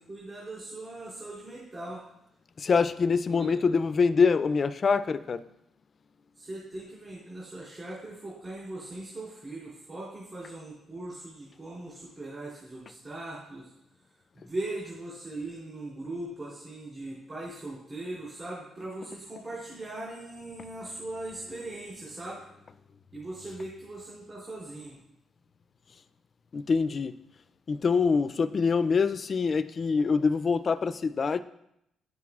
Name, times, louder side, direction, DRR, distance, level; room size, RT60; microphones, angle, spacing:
voice 1, 0.0-2.0 3.3-3.7 6.4-13.7 14.3-22.5 23.1-25.0, right 2 dB, 35° right, 3.1 m, -40 dB
voice 2, 2.6-5.4 26.5-27.1 27.7-31.4, left 5 dB, 40° left, 0.3 m, -25 dB
9.2 x 7.5 x 2.4 m
cardioid pair, 90°, 0 cm